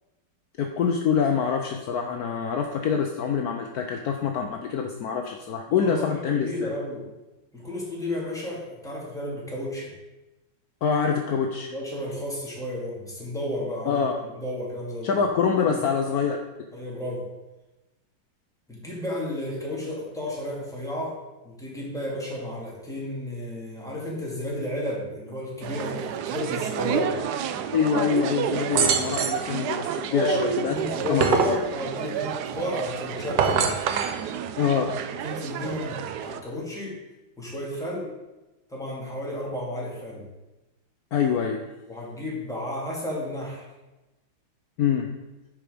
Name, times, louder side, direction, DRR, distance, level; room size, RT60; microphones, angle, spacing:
voice 1, 0.6-6.7 10.8-11.7 13.9-14.2 15.0-16.4 27.7-30.7 31.1-31.6 34.6-35.0 41.1-41.7 44.8-45.2, left 6 dB, 70° left, 3 dB, 0.9 m, -25 dB
voice 2, 5.7-7.1 7.5-9.9 11.7-15.2 15.7-15.9 16.7-17.3 18.7-27.2 30.1-33.7 35.2-37.0 37.4-38.1 38.7-40.3 41.9-43.7, left 1 dB, ahead, -5 dB, 2.3 m, -32 dB
sound 1, 25.6-36.4, right 8 dB, 80° right, 0.9 m, -31 dB
sound 2, 28.7-29.5 30.8-31.6 33.2-34.2, right 6 dB, 65° right, 1.3 m, -23 dB
11.0 x 4.8 x 5.1 m, 1.0 s
omnidirectional pair, 2.4 m